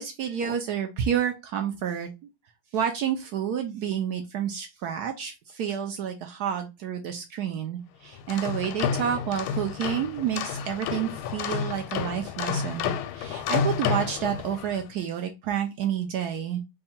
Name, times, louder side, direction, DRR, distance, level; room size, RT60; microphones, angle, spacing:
voice 1, 0.0-2.1 2.7-16.6, right 9 dB, 80° right, 5 dB, 0.9 m, -29 dB
sound 1, 8.1-14.8, left 7 dB, 85° left, 1.4 m, -30 dB
3.6 x 2.2 x 4.2 m, 0.24 s
omnidirectional pair, 2.2 m